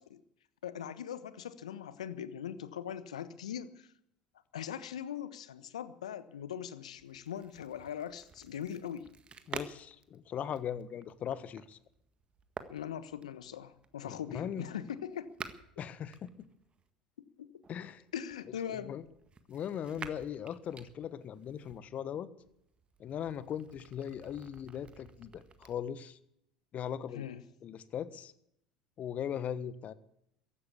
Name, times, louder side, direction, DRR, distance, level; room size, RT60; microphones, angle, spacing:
voice 1, 0.6-3.9 4.5-9.1 12.7-15.3 17.4-17.5 18.1-19.0 27.1-27.4, left 9 dB, 80° left, 14 dB, 1.2 m, -41 dB
sound 1, 6.9-16.9 17.6-21.8 22.4-25.7, right 5 dB, 30° right, 1.7 m, -51 dB
voice 2, 9.5-11.8 14.0-14.6 15.8-16.3 17.7-18.0 18.7-19.0 19.5-22.3 23.0-26.2 26.7-27.3 27.6-28.3 29.0-29.9, left 9 dB, 45° left, 16 dB, 1.3 m, -39 dB
15.0 x 11.5 x 8.4 m, 0.75 s
hypercardioid pair, 70°, 4 cm